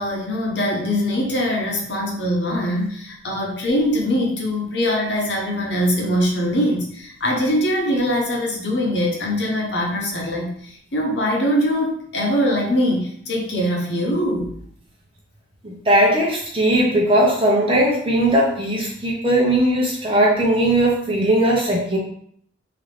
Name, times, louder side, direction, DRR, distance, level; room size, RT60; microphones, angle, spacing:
voice 1, 0.0-14.5, equal, 75° left, -1 dB, 1.0 m, -22 dB
voice 2, 15.6-22.0, right 1 dB, 30° right, -3 dB, 0.9 m, -18 dB
3.8 x 2.8 x 3.3 m, 0.64 s
head